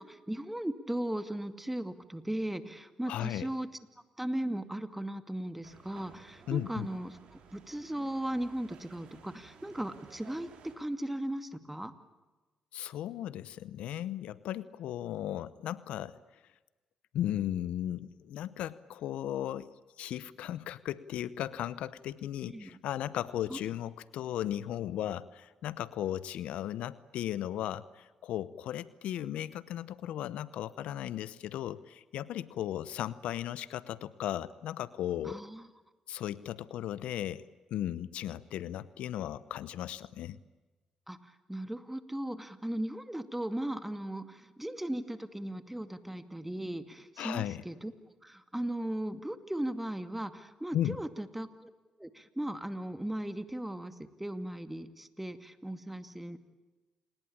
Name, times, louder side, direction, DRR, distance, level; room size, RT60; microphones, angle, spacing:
voice 1, 0.0-3.7 4.2-11.9 22.5-22.8 23.5-23.6 35.2-35.7 41.1-47.9 48.2-51.7 52.0-56.4, right 1 dB, 10° right, 10 dB, 2.4 m, -37 dB
voice 2, 3.1-3.5 6.5-6.9 12.7-16.2 17.1-19.7 20.0-35.4 36.1-40.4 47.2-47.6 50.7-51.0, left 12 dB, 80° left, 18 dB, 0.8 m, -36 dB
sound 1, 5.6-10.7, right 6 dB, 75° right, 4.9 m, -56 dB
28.5 x 20.5 x 8.7 m, 1.2 s
supercardioid pair, 55°, 2 cm